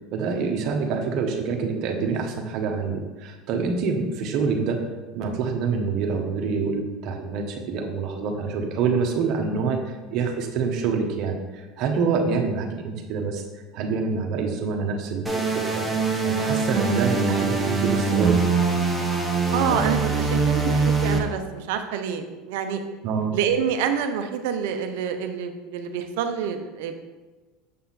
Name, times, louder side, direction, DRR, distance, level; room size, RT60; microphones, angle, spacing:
voice 1, 0.1-4.8 5.1-13.4 13.7-15.8 16.2-18.5 23.0-23.4, right 5 dB, 60° right, 3 dB, 1.3 m, -26 dB
sound 1, 15.3-21.2, right 4 dB, 5° right, 1.4 m, -23 dB
voice 2, 19.5-22.8 23.3-27.0, right 7 dB, 75° right, 7 dB, 0.8 m, -27 dB
7.6 x 5.6 x 4.2 m, 1.2 s
supercardioid pair, 95°, 0 cm